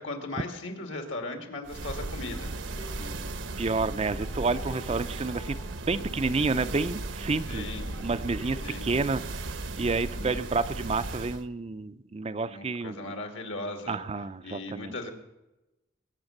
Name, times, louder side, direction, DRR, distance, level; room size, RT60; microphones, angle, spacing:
voice 1, 0.0-2.5 7.5-7.9 8.6-8.9 10.2-10.4 12.5-14.0 14.4-15.1, left 2 dB, 70° left, 5 dB, 2.5 m, -37 dB
sound 1, 1.7-11.5, right 2 dB, 70° right, 1.0 m, -36 dB
sound 2, 2.2-9.5, left 3 dB, 20° left, 0.7 m, -50 dB
voice 2, 3.6-5.6 5.9-7.7 8.0-9.2 9.8-13.2 13.9-14.9, right 3 dB, 30° right, 11 dB, 0.5 m, -29 dB
21.5 x 8.8 x 6.6 m, 0.99 s
head